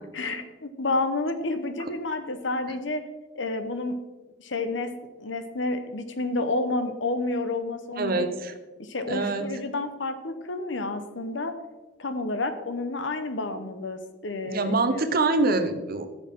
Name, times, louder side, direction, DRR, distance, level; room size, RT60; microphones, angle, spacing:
voice 1, 0.1-3.0 3.3-4.0 4.4-4.9 5.2-8.3 8.8-11.5 12.0-15.0, left 2 dB, 80° left, 9 dB, 1.0 m, -30 dB
voice 2, 8.0-8.5 9.1-9.5 14.4-16.1, right 3 dB, 50° right, 7 dB, 0.9 m, -25 dB
14.5 x 7.0 x 3.7 m, 1.2 s
head